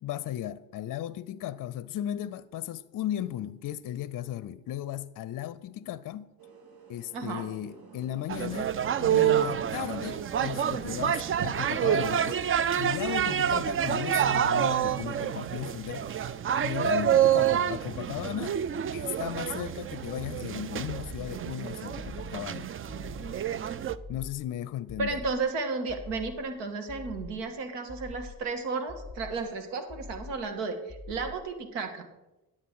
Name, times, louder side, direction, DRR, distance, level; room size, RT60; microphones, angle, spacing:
voice 1, 0.0-6.3 6.9-12.4 12.7-16.3 16.6-18.6 18.9-22.7 24.1-25.2, left 12 dB, 45° left, 0.6 m, -36 dB
sound 1, 6.4-13.4, right 4 dB, 55° right, 1.9 m, -52 dB
voice 2, 7.1-7.4 25.0-32.1, right 4 dB, 75° right, 1.5 m, -33 dB
sound 2, 8.3-24.0, right 9 dB, 30° right, 0.4 m, -28 dB
sound 3, 20.9-21.5 21.9-22.5 22.9-23.5 23.9-24.5 24.9-25.5 25.9-26.5 26.9-27.5 27.9-28.5 28.9-29.5 29.9-30.5 30.9-31.5, left 3 dB, 10° left, 1.0 m, -45 dB
10.0 x 7.5 x 4.7 m
hypercardioid pair, 50°, 44 cm